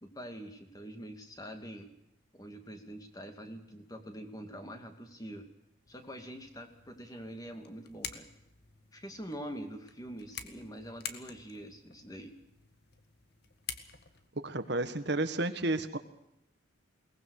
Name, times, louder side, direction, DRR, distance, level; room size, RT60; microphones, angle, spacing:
voice 1, 0.0-1.9 2.3-5.5 5.9-8.3 8.9-12.3, equal, 20° left, 6 dB, 2.4 m, -45 dB
sound 1, 5.9-14.3, left 8 dB, 55° left, 1.8 m, -48 dB
voice 2, 14.4-16.0, right 2 dB, 55° right, 9 dB, 1.5 m, -31 dB
22.5 x 19.0 x 6.6 m, 0.83 s
head